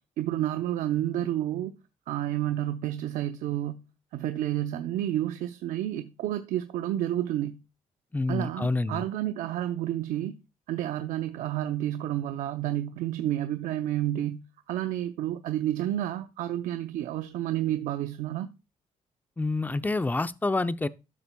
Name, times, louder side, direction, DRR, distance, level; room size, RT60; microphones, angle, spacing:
voice 1, 0.2-1.7 2.1-3.9 4.1-7.6 8.3-10.4 10.7-18.5, right 13 dB, 90° right, 0.6 m, -30 dB
voice 2, 8.1-9.0 19.4-20.9, left 2 dB, 15° left, 0.6 m, -27 dB
12.5 x 6.9 x 2.3 m
cardioid pair, 95°, 13 cm